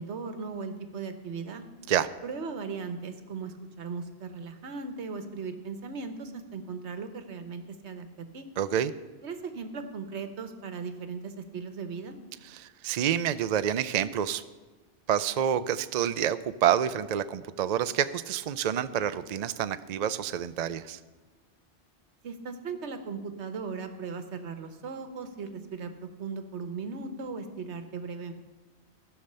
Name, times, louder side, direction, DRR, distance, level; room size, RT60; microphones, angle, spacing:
voice 1, 0.0-1.6 2.2-8.5 9.2-12.1 22.2-28.3, right 5 dB, 80° right, 8 dB, 1.3 m, -38 dB
voice 2, 8.6-8.9 12.5-14.4 15.1-21.0, right 9 dB, 55° right, 13 dB, 0.4 m, -28 dB
15.0 x 5.8 x 6.7 m, 1.3 s
omnidirectional pair, 1.1 m